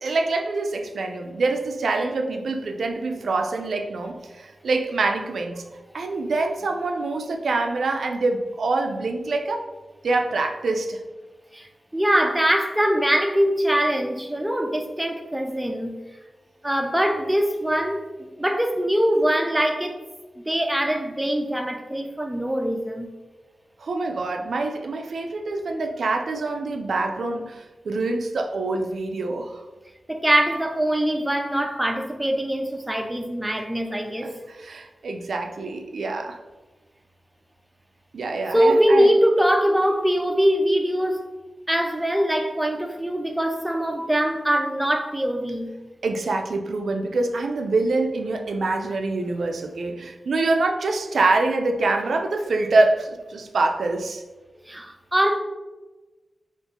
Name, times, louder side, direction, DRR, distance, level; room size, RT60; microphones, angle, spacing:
voice 1, 0.0-5.6 5.9-9.7 10.0-11.0 23.8-29.6 34.2-36.4 38.1-39.1 46.0-54.2, right 3 dB, 85° right, 4 dB, 0.3 m, -25 dB
voice 2, 11.9-16.0 16.6-18.0 18.4-20.0 20.4-23.1 30.1-34.3 38.5-41.2 41.7-45.7 54.7-55.4, equal, 10° right, 3 dB, 0.3 m, -22 dB
2.8 x 2.4 x 3.5 m, 1.2 s
wide cardioid pair, 120°, 0 cm